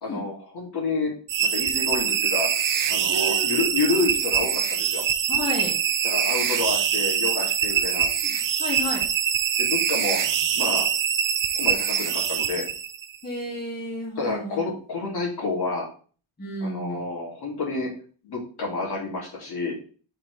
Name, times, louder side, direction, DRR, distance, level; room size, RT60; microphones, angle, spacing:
voice 1, 0.0-1.1 1.4-2.6 2.9-5.1 6.0-8.1 9.6-10.2 10.5-10.8 11.6-12.7 14.2-15.9 16.6-17.9 18.2-19.7, left 3 dB, 50° left, -2 dB, 2.8 m, -29 dB
sound 1, 1.3-13.2, right 8 dB, 40° right, 0.7 m, -24 dB
voice 2, 3.1-3.9 5.3-5.8 7.7-9.1 13.2-14.6 16.4-17.0, left 1 dB, 20° left, -4 dB, 2.2 m, -33 dB
7.4 x 4.4 x 3.3 m, 0.41 s
cardioid pair, 125°, 49 cm